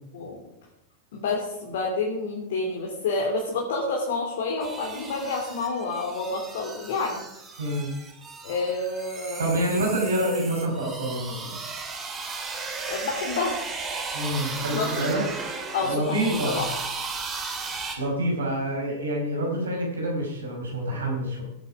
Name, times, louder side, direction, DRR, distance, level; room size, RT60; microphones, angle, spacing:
voice 1, 1.1-7.2 7.5-7.6 8.4-9.5 12.8-13.6 14.7-15.1 15.7-16.7, left 3 dB, 55° left, -1 dB, 3.2 m, -29 dB
sound 1, 4.6-18.0, right 4 dB, 20° right, 2.9 m, -35 dB
voice 2, 7.6-7.9 9.4-11.6 14.1-15.2 15.8-16.6 18.0-21.4, right 1 dB, 70° right, -1 dB, 5.6 m, -27 dB
18.0 x 9.6 x 5.0 m, 0.85 s
figure-of-eight pair, 90°, 0 cm